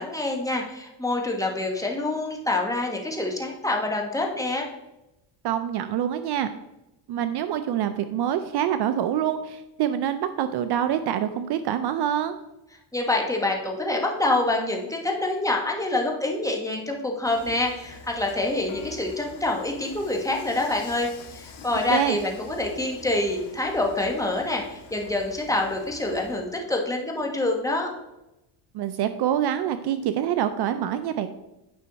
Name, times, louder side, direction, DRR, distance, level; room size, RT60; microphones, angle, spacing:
voice 1, 0.0-4.7 12.9-21.1 21.3-27.9, left 2 dB, 5° left, 0 dB, 1.4 m, -26 dB
voice 2, 5.4-6.5 7.1-12.4 21.9-22.2 28.7-31.3, right 10 dB, 55° right, 10 dB, 0.6 m, -26 dB
Dishes pots and pans / Frying (food), 17.3-26.4, left 4 dB, 70° left, 2.1 m, -46 dB
9.7 x 5.5 x 4.0 m, 0.92 s
cardioid pair, 130°, 49 cm